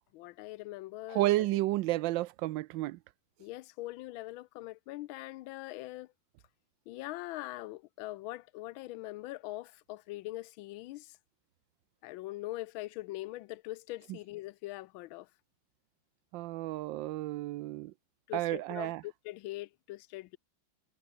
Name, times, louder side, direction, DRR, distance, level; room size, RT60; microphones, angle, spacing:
voice 1, 0.1-1.5 3.4-6.1 6.9-11.1 12.0-15.3 18.3-20.4, left 18 dB, 80° left, 1.4 m, -42 dB
voice 2, 1.1-3.0 14.1-14.2 16.3-17.9 18.3-19.0, right 17 dB, 75° right, 1.2 m, -31 dB
omnidirectional pair, 2.2 m